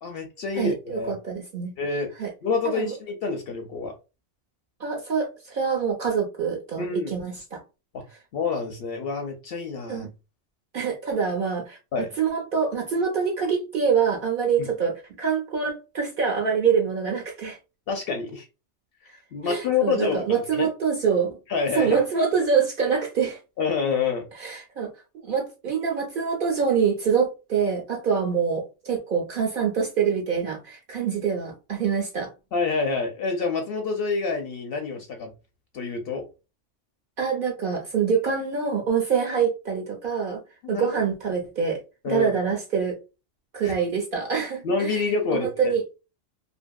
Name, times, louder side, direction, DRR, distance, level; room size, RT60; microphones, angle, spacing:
voice 1, 0.0-1.1 1.8-2.1 2.4-4.0 6.8-7.2 7.9-8.0 8.3-10.1 11.9-12.1 14.6-14.7 17.9-18.5 19.3-20.7 21.5-22.0 23.6-24.2 32.5-35.3 35.7-36.3 40.6-40.9 42.0-42.3 43.6-43.7 44.6-45.7, left 4 dB, 60° left, 0.7 m, -27 dB
voice 2, 0.6-1.7 2.2-2.3 2.7-2.9 4.8-7.6 9.9-10.1 10.7-17.6 19.4-21.4 21.7-23.4 24.4-32.3 37.2-40.4 40.7-43.0 43.5-45.0 45.3-45.8, right 6 dB, 60° right, 0.6 m, -25 dB
2.6 x 2.5 x 2.2 m
omnidirectional pair, 1.3 m